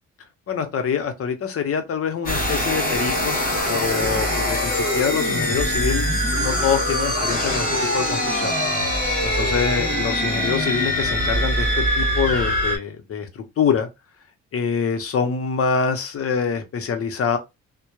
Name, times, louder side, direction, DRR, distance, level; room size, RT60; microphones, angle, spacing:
voice 1, 0.5-3.4 3.7-6.1 6.3-7.7 7.9-8.6 9.2-13.9 14.5-17.4, left 6 dB, 50° left, 0.8 m, -25 dB
sound 1, 2.3-12.8, equal, 30° left, 1.1 m, -23 dB
2.8 x 2.2 x 2.2 m
cardioid pair, 90°, 30 cm